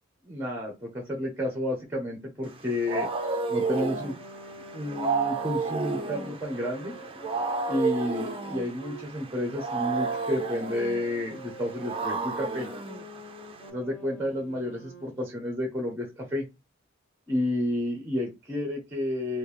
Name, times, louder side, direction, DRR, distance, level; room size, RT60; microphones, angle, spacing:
voice 1, 0.3-3.1 3.5-4.1 4.7-6.9 7.7-12.7 13.7-16.5 17.3-19.4, left 1 dB, 10° right, 2 dB, 0.9 m, -31 dB
Wild animals, 2.5-13.7, right 4 dB, 25° right, 0.5 m, -32 dB
Wind instrument woodwind instrument, 3.3-9.1 9.8-15.2, equal, 40° left, 1.1 m, -46 dB
3.4 x 2.6 x 3.3 m, 0.24 s
head